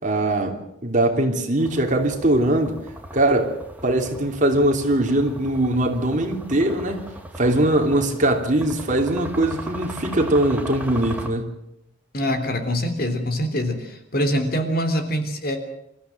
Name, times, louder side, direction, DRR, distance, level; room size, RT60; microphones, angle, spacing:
voice 1, 0.0-2.8 3.1-3.5 3.8-7.0 7.4-11.5, right 1 dB, 40° right, 4 dB, 3.0 m, -21 dB
sound 1, 1.6-11.3, right 1 dB, 10° right, 2.4 m, -38 dB
voice 2, 12.1-15.6, equal, 50° left, 7 dB, 3.4 m, -24 dB
27.0 x 14.5 x 7.8 m, 0.83 s
head